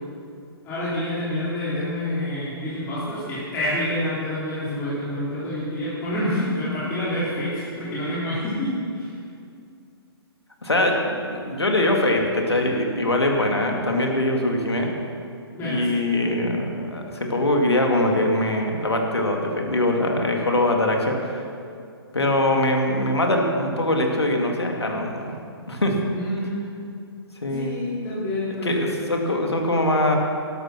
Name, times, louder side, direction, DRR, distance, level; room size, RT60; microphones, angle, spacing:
voice 1, 0.6-9.1 15.5-16.2 26.1-26.6 27.5-28.7, left 1 dB, 20° left, -11 dB, 3.5 m, -27 dB
voice 2, 10.6-14.9 15.6-21.5 22.1-25.3 25.7-25.9 27.4-27.8 28.6-30.2, left 1 dB, 80° left, 1 dB, 2.4 m, -22 dB
13.0 x 12.5 x 5.9 m, 2.4 s
figure-of-eight pair, 125°, 14 cm